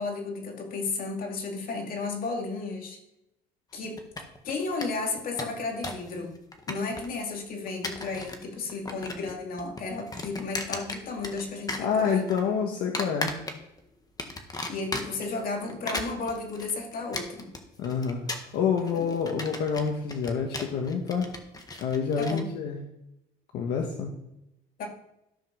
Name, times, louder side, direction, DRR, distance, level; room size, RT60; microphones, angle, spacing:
voice 1, 0.0-3.0 3.7-4.1 4.4-6.4 6.7-12.3 14.7-17.5 18.8-19.1 22.2-22.5 24.8-24.9, left 3 dB, 60° left, 2 dB, 2.5 m, -33 dB
sound 1, 4.0-4.5 4.8-4.9 5.2-6.1 6.3-7.2 7.7-8.4 8.7-9.3 9.6-11.4 11.7-12.4 12.9-13.8 14.2-15.3 15.7-22.4, left 2 dB, 20° left, 1.5 m, -36 dB
voice 2, 11.8-13.3 17.8-21.3 21.8-22.8 23.5-24.1, left 6 dB, 80° left, 2 dB, 1.5 m, -28 dB
13.5 x 5.2 x 6.2 m, 0.86 s
cardioid pair, 110°, 17 cm